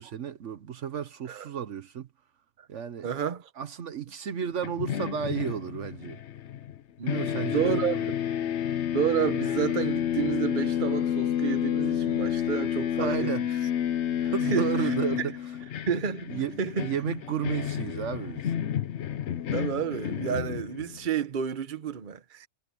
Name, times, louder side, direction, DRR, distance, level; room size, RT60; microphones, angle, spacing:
voice 1, 0.0-2.1 2.7-3.1 3.6-6.2 7.0-8.1 13.0-13.4 14.2-15.3 16.3-18.5, right 8 dB, 70° right, 1.2 m, -32 dB
voice 2, 3.0-3.5 7.0-7.2 7.5-7.9 8.9-13.3 14.2-15.3 15.9-16.9 19.5-22.5, right 8 dB, 40° right, 1.1 m, -30 dB
sound 1, 4.6-6.8 7.1-21.0, left 10 dB, 65° left, 1.0 m, -30 dB
omnidirectional pair, 1.3 m